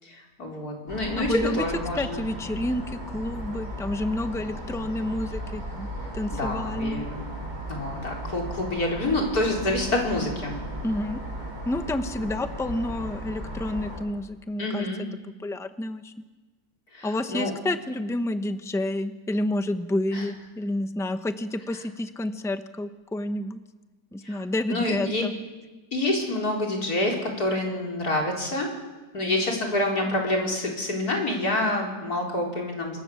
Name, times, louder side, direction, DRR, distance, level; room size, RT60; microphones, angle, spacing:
voice 1, 0.0-2.3 6.3-7.2 7.7-10.6 14.6-15.0 16.9-17.5 20.1-20.3 24.2-24.4 24.7-25.2 25.9-28.7 29.1-33.0, left 1 dB, 70° left, -1 dB, 4.9 m, -27 dB
sound 1, 0.9-14.0, right 1 dB, 25° right, 7.4 m, -36 dB
voice 2, 1.2-1.6 1.9-5.9 6.1-7.0 10.8-11.2 11.6-14.9 15.4-16.1 17.0-23.6 24.1-25.3, left 1 dB, ahead, 9 dB, 0.8 m, -29 dB
26.5 x 21.0 x 7.2 m, 1.2 s
omnidirectional pair, 1.7 m